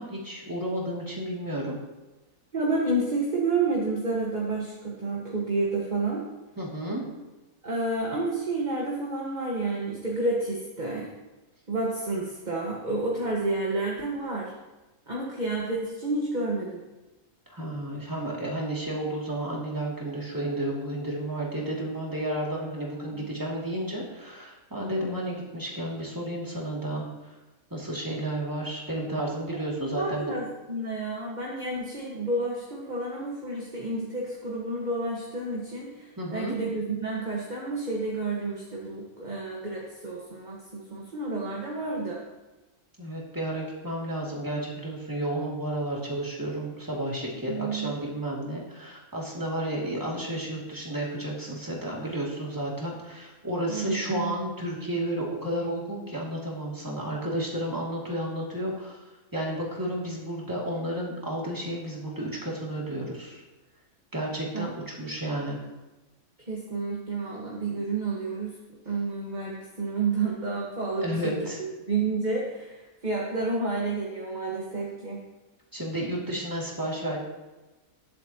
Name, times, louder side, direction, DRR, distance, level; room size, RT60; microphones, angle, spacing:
voice 1, 0.0-1.8 6.6-7.0 17.5-27.3 27.7-30.3 36.2-36.5 43.0-63.4 64.1-65.6 71.0-71.6 75.7-77.2, right 1 dB, 15° right, -3 dB, 2.6 m, -32 dB
voice 2, 2.5-6.2 7.6-11.1 11.7-14.5 15.1-16.8 23.1-23.3 29.9-42.2 47.5-48.0 53.7-54.3 64.5-64.7 66.5-68.6 68.8-75.2, right 3 dB, 30° right, -3 dB, 1.7 m, -30 dB
20.5 x 7.8 x 3.0 m, 1.1 s
omnidirectional pair, 1.5 m